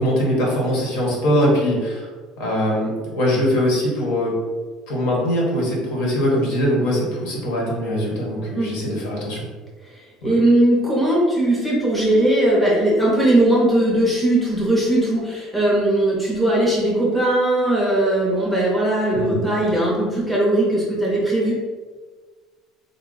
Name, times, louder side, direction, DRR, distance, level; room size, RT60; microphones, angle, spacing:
voice 1, 0.0-2.1 2.4-4.4 4.9-9.5 10.2-10.3 19.1-19.4, equal, 70° left, -3 dB, 1.3 m, -21 dB
voice 2, 9.9-21.5, right 1 dB, 5° left, -6 dB, 0.7 m, -19 dB
3.8 x 2.2 x 3.8 m, 1.4 s
cardioid pair, 180°, 0 cm